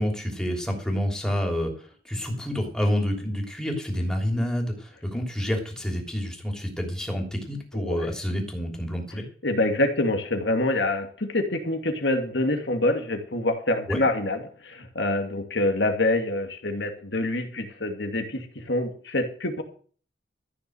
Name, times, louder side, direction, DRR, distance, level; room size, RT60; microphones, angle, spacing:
voice 1, 0.0-9.2 13.9-14.0, equal, 5° left, 1 dB, 3.1 m, -28 dB
voice 2, 7.7-8.1 9.4-19.6, left 2 dB, 70° left, 6 dB, 2.6 m, -26 dB
14.0 x 6.7 x 8.0 m, 0.44 s
head